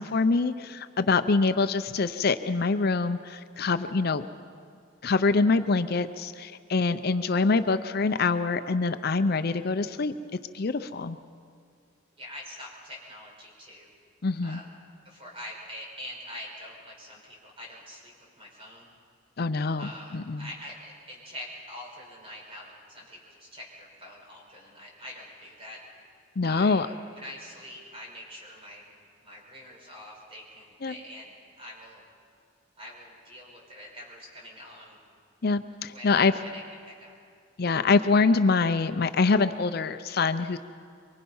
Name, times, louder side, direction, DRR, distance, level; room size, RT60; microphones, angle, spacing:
voice 1, 0.0-4.3 5.0-10.1 10.5-11.2 14.2-14.6 19.4-20.5 26.4-26.9 30.8-30.9 35.4-36.3 37.6-40.6, left 4 dB, 55° left, 10 dB, 0.6 m, -25 dB
voice 2, 12.2-13.9 14.4-14.7 15.1-18.9 19.8-25.8 26.4-26.8 27.1-28.8 29.2-32.0 32.8-35.0 35.9-37.1, left 1 dB, 30° right, -1 dB, 5.1 m, -44 dB
24.0 x 24.0 x 5.5 m, 2.2 s
head